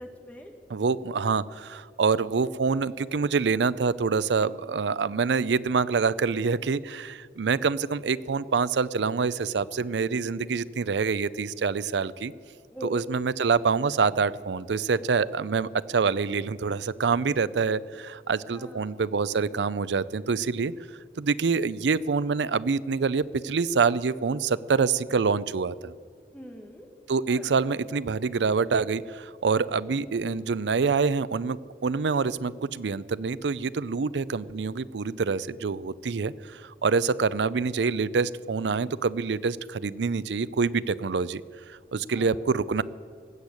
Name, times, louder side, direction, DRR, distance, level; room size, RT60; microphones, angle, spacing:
voice 1, 0.0-0.5 12.7-13.0 18.6-18.9 26.3-26.9 27.3-27.5 42.2-42.4, left 1 dB, 10° left, 3 dB, 1.4 m, -41 dB
voice 2, 0.7-12.3 12.8-20.7 21.2-25.9 27.1-41.4 41.7-42.8, right 5 dB, 90° right, 18 dB, 0.5 m, -26 dB
19.5 x 8.2 x 8.5 m, 2.1 s
head